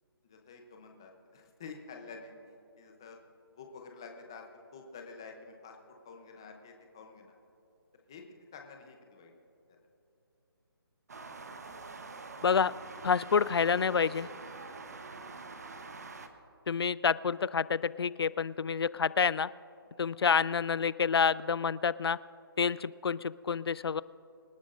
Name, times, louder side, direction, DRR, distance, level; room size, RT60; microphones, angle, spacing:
voice 1, 0.2-3.2 3.5-4.4 4.7-7.4 8.1-8.2 8.5-9.3 9.7-9.8 14.7-14.9 19.9-20.0, left 4 dB, 10° left, 3 dB, 0.6 m, -49 dB
sound 1, 11.1-16.3, right 3 dB, 40° right, 0.9 m, -45 dB
voice 2, 12.4-12.7 13.0-14.3 16.7-19.5 20.0-22.2 22.6-24.0, left 6 dB, 85° left, 19 dB, 0.4 m, -28 dB
26.0 x 11.0 x 2.5 m, 2.8 s
hypercardioid pair, 180°, 13 cm